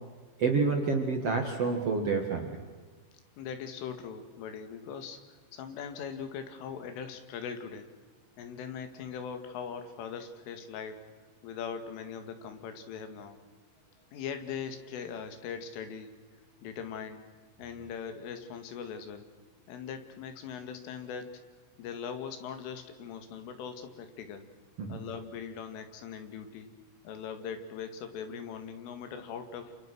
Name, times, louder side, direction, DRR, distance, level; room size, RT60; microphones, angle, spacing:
voice 1, 0.4-2.6 24.8-25.0, right 4 dB, 50° right, 3 dB, 1.9 m, -28 dB
voice 2, 3.4-7.9 8.4-11.1 11.4-13.4 14.1-16.2 16.6-17.3 17.6-19.3 19.7-21.3 21.8-24.5 24.9-26.7 27.0-29.7, left 7 dB, 90° left, 8 dB, 4.7 m, -40 dB
28.5 x 28.0 x 6.3 m, 1.4 s
omnidirectional pair, 5.5 m